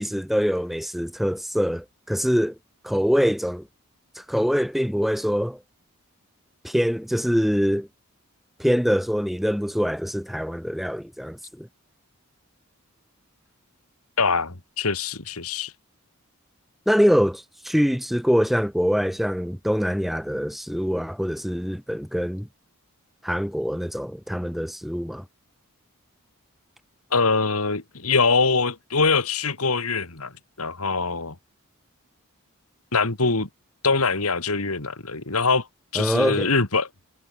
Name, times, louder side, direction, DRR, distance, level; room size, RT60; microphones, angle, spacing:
voice 1, 0.0-2.5 2.8-3.7 4.2-5.6 6.6-7.9 8.6-11.7 16.9-22.5 23.2-25.2 35.9-36.5, equal, ahead, 6.2 m, -24 dB
voice 2, 14.2-15.7 27.1-30.3 30.6-31.3 32.9-33.5 33.8-35.7 35.9-36.9, left 4 dB, 80° left, 2.6 m, -23 dB
head